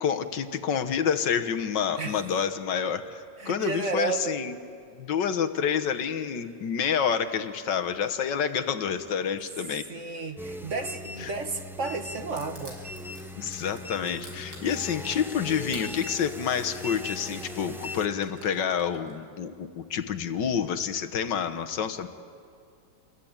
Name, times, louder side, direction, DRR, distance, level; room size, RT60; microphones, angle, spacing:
voice 1, 0.0-4.6 5.0-9.9 11.2-11.3 13.4-22.1, left 7 dB, 75° left, 8 dB, 1.8 m, -28 dB
voice 2, 2.0-2.4 3.4-4.4 9.9-12.8, right 3 dB, 45° right, 7 dB, 1.4 m, -32 dB
sound 1, 10.4-18.1, left 1 dB, 5° right, 0.4 m, -39 dB
Crushing, 12.4-19.1, right 1 dB, 65° right, 6.1 m, -48 dB
28.0 x 22.0 x 8.8 m, 2.3 s
omnidirectional pair, 1.9 m